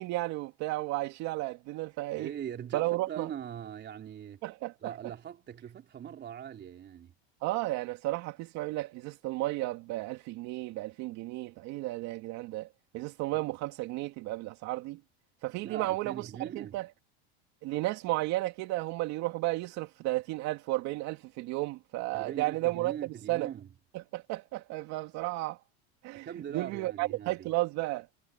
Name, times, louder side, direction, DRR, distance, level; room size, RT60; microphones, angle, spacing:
voice 1, 0.0-2.3 2.7-3.3 4.4-4.9 7.4-12.7 12.9-15.0 15.4-16.9 17.6-23.5 23.9-25.6 26.0-26.3 26.5-28.1, right 19 dB, 55° right, 2.5 m, -33 dB
voice 2, 2.2-4.4 4.8-7.1 13.3-13.4 15.6-16.8 22.1-23.7 26.1-27.5, right 9 dB, 35° right, 3.9 m, -41 dB
supercardioid pair, 115°, 33 cm